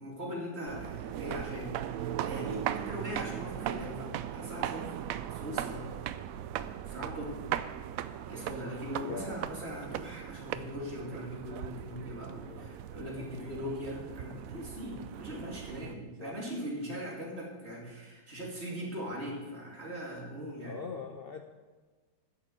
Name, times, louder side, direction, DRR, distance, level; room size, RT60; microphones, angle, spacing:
voice 1, 0.0-6.0 6.8-7.3 8.3-20.8, equal, 35° right, -2 dB, 2.9 m, -40 dB
sound 1, 0.7-15.9, right 10 dB, 80° right, 0.7 m, -38 dB
voice 2, 8.9-9.4 12.5-12.8 13.4-13.6 16.2-16.4 20.6-21.4, left 5 dB, 75° left, 5 dB, 0.5 m, -43 dB
10.5 x 6.9 x 7.6 m, 1.4 s
omnidirectional pair, 2.0 m